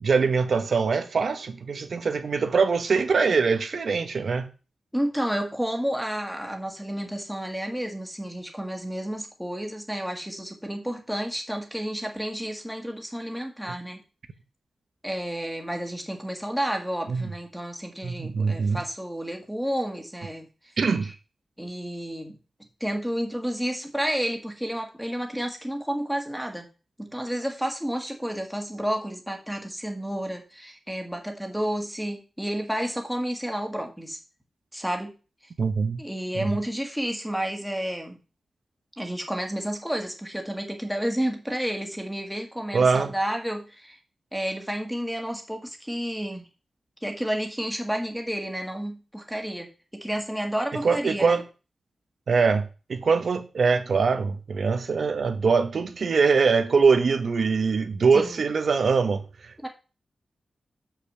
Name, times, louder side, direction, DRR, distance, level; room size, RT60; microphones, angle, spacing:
voice 1, 0.0-4.5 17.1-17.3 18.0-18.8 20.8-21.1 35.6-36.0 36.3-36.5 42.7-43.1 50.8-51.4 52.3-59.7, right 5 dB, 60° right, 1.0 m, -23 dB
voice 2, 4.9-14.0 15.0-20.7 21.0-21.1 21.6-22.3 22.8-26.7 27.0-34.2 34.7-35.1 36.0-38.2 39.0-44.0 44.3-46.5 47.0-49.7 49.9-51.4 58.1-58.4 59.6-59.7, equal, ahead, 1.7 m, -31 dB
6.6 x 5.8 x 6.7 m
wide cardioid pair, 140°, 0 cm